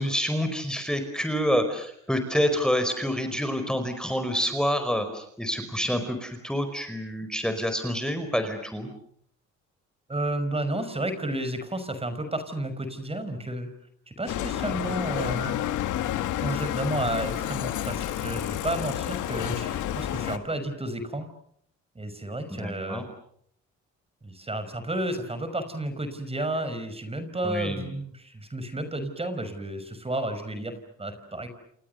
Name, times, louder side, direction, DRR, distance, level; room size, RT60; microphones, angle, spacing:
voice 1, 0.0-8.9 22.5-23.0 27.4-27.8, equal, ahead, 7 dB, 4.9 m, -27 dB
voice 2, 10.1-13.7 14.1-15.6 16.3-21.3 22.0-23.0 24.2-31.5, right 1 dB, 20° right, 10 dB, 5.4 m, -32 dB
Bicycle, 14.3-20.4, left 12 dB, 90° left, 2.0 m, -30 dB
29.5 x 28.5 x 6.7 m, 0.68 s
cardioid pair, 90°, 30 cm